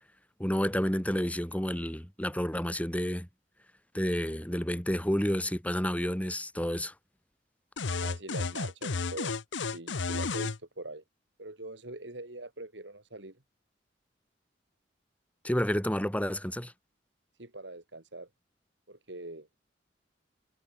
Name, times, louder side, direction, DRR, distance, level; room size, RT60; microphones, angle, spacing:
voice 1, 0.4-3.3 3.9-6.9 15.4-16.7, equal, 10° left, 4.8 m, -30 dB
sound 1, 7.8-10.6, left 4 dB, 80° left, 0.9 m, -32 dB
voice 2, 8.0-9.3 9.7-11.0 11.4-13.4 17.4-18.3 18.9-19.5, right 2 dB, 70° right, 3.7 m, -42 dB
head